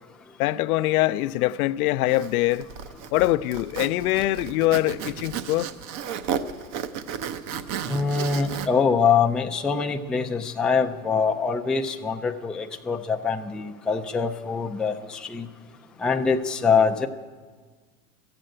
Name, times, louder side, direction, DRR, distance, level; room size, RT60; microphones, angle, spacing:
voice 1, 0.4-2.7 3.1-5.7, left 16 dB, 80° left, 0.5 m, -23 dB
Zipper (clothing), 2.1-8.7, right 8 dB, 45° right, 0.8 m, -33 dB
voice 2, 7.9-15.5 16.0-17.1, left 5 dB, ahead, 0.3 m, -24 dB
14.0 x 7.8 x 8.8 m
supercardioid pair, 110°, 43 cm